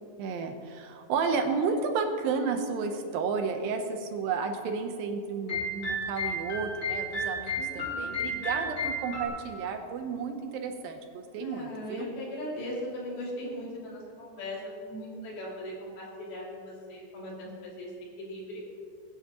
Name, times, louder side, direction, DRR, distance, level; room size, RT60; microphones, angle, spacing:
voice 1, 0.2-12.1, right 5 dB, 75° right, 5 dB, 2.6 m, -32 dB
sound 1, 5.5-9.3, equal, 30° left, 2.5 m, -32 dB
voice 2, 7.6-8.2 11.4-17.9 18.2-18.6, left 1 dB, 80° left, -5 dB, 4.8 m, -39 dB
22.0 x 10.0 x 3.0 m, 2.3 s
omnidirectional pair, 4.3 m